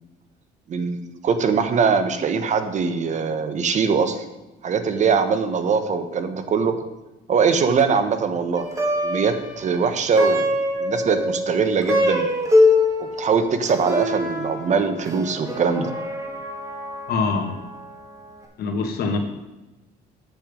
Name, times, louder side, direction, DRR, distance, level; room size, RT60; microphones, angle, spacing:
voice 1, 0.7-4.2 4.6-6.9 7.3-8.7 9.0-10.5 10.8-12.3 13.0-15.9, right 5 dB, 45° right, 9 dB, 1.2 m, -22 dB
Plucked string instrument, 8.6-18.0, left 1 dB, 20° right, 2.2 m, -24 dB
voice 2, 17.1-17.6 18.6-19.2, left 4 dB, 65° left, 4 dB, 1.8 m, -24 dB
9.2 x 7.0 x 5.3 m, 1.1 s
cardioid pair, 110°, 17 cm